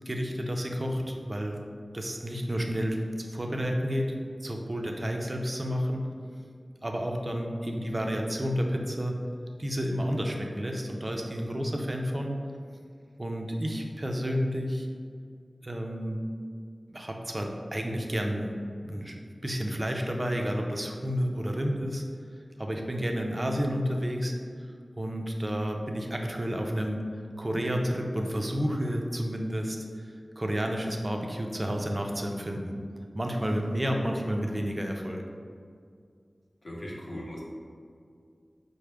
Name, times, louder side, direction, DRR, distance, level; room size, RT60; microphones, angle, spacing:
voice 1, 0.1-1.6 1.9-6.0 6.8-9.1 9.6-12.3 13.2-14.9 15.6-16.2 16.9-22.0 22.6-24.3 25.0-27.0 27.4-32.7 33.1-35.2, equal, 35° right, 2 dB, 0.5 m, -30 dB
voice 2, 36.6-37.4, equal, 55° left, -5 dB, 0.9 m, -38 dB
4.6 x 2.1 x 3.3 m, 2.2 s
wide cardioid pair, 45°, 0 cm